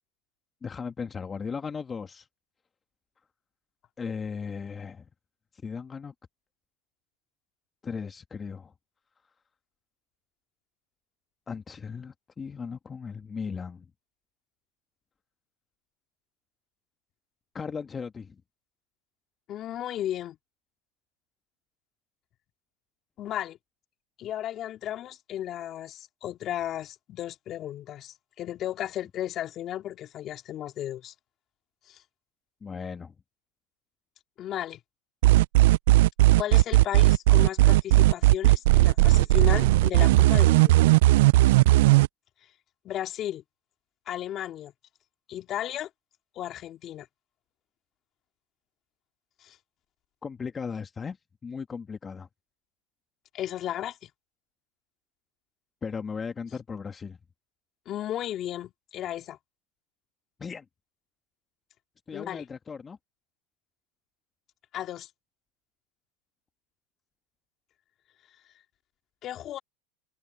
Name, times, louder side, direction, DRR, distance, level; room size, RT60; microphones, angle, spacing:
voice 1, 0.6-2.3 4.0-5.0 5.6-6.1 7.8-8.7 11.5-13.8 17.5-18.4 32.6-33.1 50.2-51.2 51.4-52.3 55.8-57.2 60.4-60.6 62.1-63.0, left 5 dB, 25° left, 1.8 m, -36 dB
voice 2, 19.5-20.4 23.2-23.6 24.2-31.1 31.9-32.0 34.4-34.8 36.4-40.9 42.8-43.4 44.1-44.7 45.3-45.9 46.4-47.1 49.4-49.6 53.3-54.1 57.9-59.4 62.1-62.4 64.7-65.1 69.2-69.6, left 12 dB, 45° left, 2.6 m, -34 dB
sound 1, 35.2-42.1, right 17 dB, 75° right, 0.4 m, -17 dB
hypercardioid pair, 100°, 0 cm